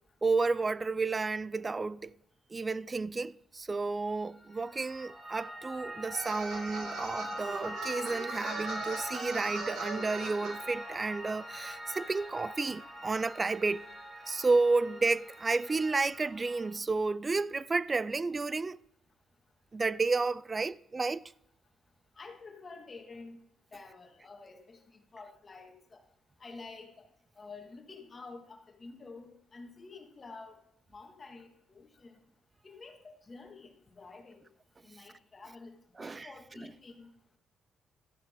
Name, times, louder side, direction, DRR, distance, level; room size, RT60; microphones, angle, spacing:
voice 1, 0.2-2.1 2.5-13.8 14.3-18.8 19.7-21.3 36.0-36.3 36.6-36.7, right 3 dB, 25° right, 0.3 m, -31 dB
Piano, 4.3-16.7, equal, 10° right, 4.8 m, -43 dB
sound 1, 6.1-10.5, right 3 dB, 90° right, 2.4 m, -40 dB
voice 2, 22.2-23.4 23.7-26.0 26.4-27.1 27.4-30.6 30.9-32.2 32.6-34.5 34.8-35.7 36.0-37.1, left 3 dB, 35° left, 2.0 m, -49 dB
13.0 x 10.5 x 3.7 m
cardioid pair, 90°, 0 cm